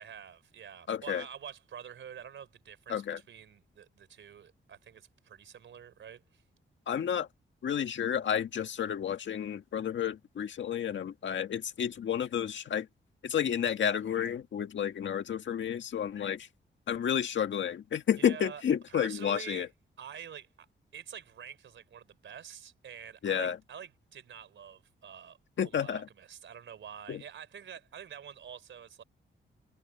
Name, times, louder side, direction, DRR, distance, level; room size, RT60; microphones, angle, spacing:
voice 1, 0.0-6.4 18.2-18.6 18.9-19.7 20.0-20.7 20.9-25.4 25.7-29.0, right 8 dB, 80° right, 3.7 m, -47 dB
voice 2, 0.9-1.2 2.9-3.2 6.9-7.3 7.6-12.9 13.2-16.5 16.9-19.7 23.2-23.6 25.6-26.1 27.1-27.2, left 8 dB, 75° left, 1.8 m, -31 dB
wide cardioid pair, 115°, 20 cm